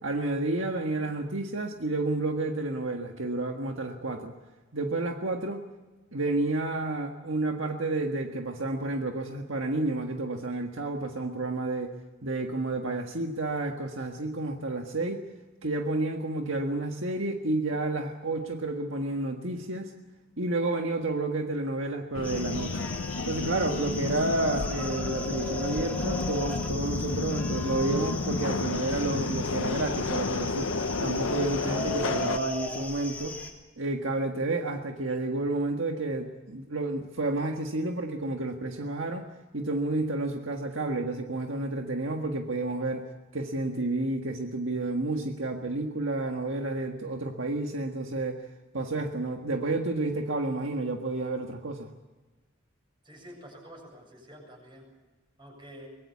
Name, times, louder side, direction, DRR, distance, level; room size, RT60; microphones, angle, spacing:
voice 1, 0.0-4.3 4.7-5.6 6.1-11.9 12.2-15.2 15.6-19.9 20.4-22.9 23.3-30.7 31.0-33.4 33.8-39.3 39.5-43.0 43.3-48.4 48.7-51.9, right 2 dB, 65° right, 3 dB, 1.7 m, -30 dB
Subway metro underground, 22.1-32.4, left 3 dB, 75° left, 0.7 m, -32 dB
sound 1, 22.2-33.5, left 2 dB, 5° left, 3.3 m, -37 dB
voice 2, 53.0-54.9 55.4-55.9, equal, 25° right, 1 dB, 7.7 m, -48 dB
24.0 x 20.5 x 8.5 m, 1.2 s
head